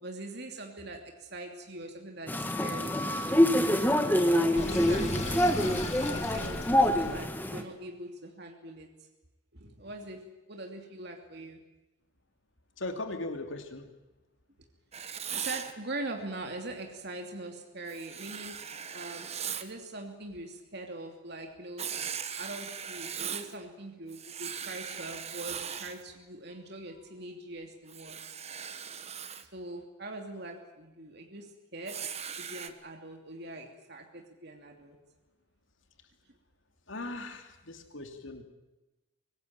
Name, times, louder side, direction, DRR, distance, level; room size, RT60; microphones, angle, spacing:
voice 1, 0.0-3.0 4.1-5.8 6.1-8.9 9.5-11.6 15.3-18.6 18.9-19.3 19.6-21.9 22.4-28.2 29.5-32.0 32.4-35.0, right 2 dB, 50° right, 3 dB, 2.8 m, -42 dB
sound 1, 2.3-7.6, left 1 dB, 10° left, 1.7 m, -26 dB
Sink (filling or washing), 4.5-7.3, left 2 dB, 35° left, 2.4 m, -36 dB
voice 2, 12.8-13.9 36.9-38.4, left 2 dB, 65° left, 6 dB, 2.9 m, -38 dB
Writing, 14.9-15.7 17.9-19.7 21.8-23.5 24.1-26.0 27.9-29.4 31.9-32.7, right 8 dB, 30° right, 1.4 m, -39 dB
24.5 x 19.5 x 9.0 m, 1.1 s
head